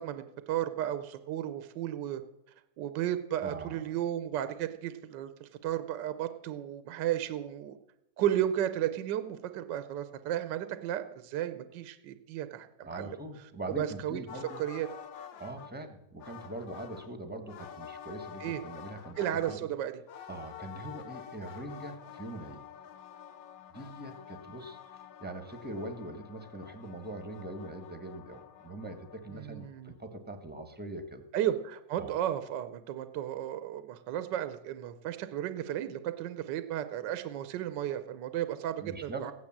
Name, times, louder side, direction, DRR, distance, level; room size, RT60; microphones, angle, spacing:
voice 1, 0.0-2.2 2.8-7.8 8.2-13.2 13.8-14.9 18.4-18.6 19.2-20.0 29.3-30.0 31.3-39.3, right 11 dB, 75° right, 11 dB, 1.4 m, -34 dB
voice 2, 3.4-3.8 12.8-14.6 15.4-19.6 20.3-22.6 23.7-24.8 25.2-31.2 32.0-32.1 38.8-39.2, right 1 dB, 5° right, 7 dB, 1.2 m, -42 dB
sound 1, 14.3-15.7 16.2-17.1 17.5-19.6 20.1-29.8, left 9 dB, 80° left, 1.6 m, -48 dB
15.5 x 9.6 x 7.3 m, 0.85 s
omnidirectional pair, 2.0 m